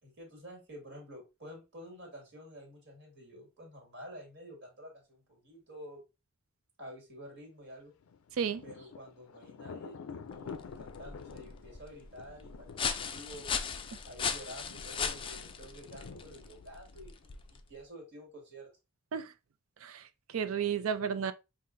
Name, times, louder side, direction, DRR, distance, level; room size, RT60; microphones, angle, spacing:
voice 1, 0.0-6.0 6.8-7.9 8.6-13.5 14.1-18.7, equal, 55° right, 2.0 m, -50 dB
Thunder, 8.0-17.5, left 6 dB, 90° left, 0.4 m, -49 dB
sound 1, 10.3-17.8, left 6 dB, 25° left, 0.4 m, -38 dB
voice 2, 19.8-21.3, right 7 dB, 80° right, 0.4 m, -33 dB
5.5 x 2.6 x 2.6 m
head